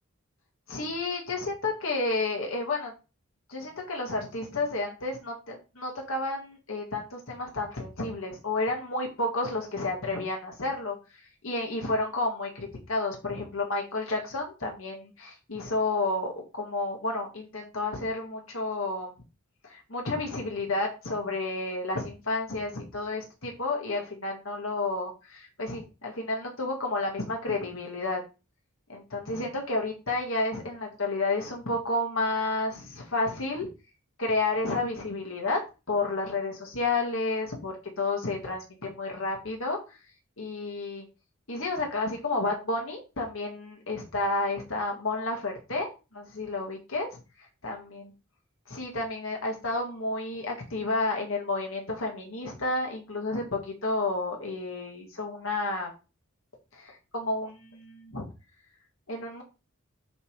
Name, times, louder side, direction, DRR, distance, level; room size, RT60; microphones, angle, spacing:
voice 1, 0.7-2.9 3.5-11.0 11.4-19.1 19.6-28.2 28.9-33.7 34.2-35.6 35.9-39.8 40.4-41.0 41.5-47.2 47.6-48.0 48.7-55.9 56.7-58.3 59.1-59.4, left 2 dB, 75° left, 0 dB, 2.0 m, -31 dB
8.0 x 3.6 x 4.6 m, 0.29 s
head